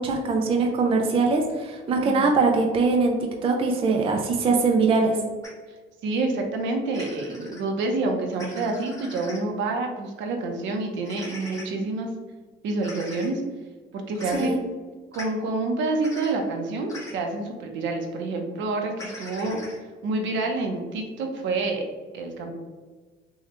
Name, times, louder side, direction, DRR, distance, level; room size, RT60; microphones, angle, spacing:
voice 1, 0.0-3.2 3.4-5.2 14.3-14.6, right 4 dB, 30° right, 2 dB, 0.4 m, -22 dB
sound 1, 5.4-5.5 6.9-7.6 8.3-9.4 11.1-11.6 12.8-13.3 14.2-14.5 15.1-15.2 16.0-16.3 16.9-17.2 19.0-19.8, left 2 dB, 15° left, 0.9 m, -40 dB
voice 2, 6.0-12.1 12.6-13.4 13.9-14.7 15.1-19.6 20.0-21.8 22.1-22.5, right 3 dB, 75° right, 3 dB, 0.8 m, -28 dB
6.4 x 2.3 x 2.9 m, 1.4 s
cardioid pair, 175°, 20 cm